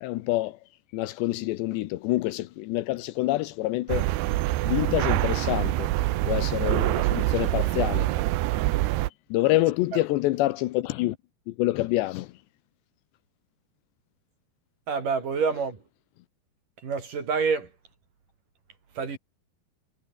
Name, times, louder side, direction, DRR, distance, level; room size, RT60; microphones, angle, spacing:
voice 1, 0.0-0.6 0.9-4.1 4.6-5.9 6.3-8.1 9.3-11.2 11.5-12.3, left 17 dB, 85° left, 3.1 m, -27 dB
sound 1, 3.9-9.1, right 17 dB, 75° right, 2.9 m, -25 dB
voice 2, 14.9-15.8 16.8-17.7 19.0-19.2, right 5 dB, 50° right, 6.0 m, -27 dB
omnidirectional pair, 5.0 m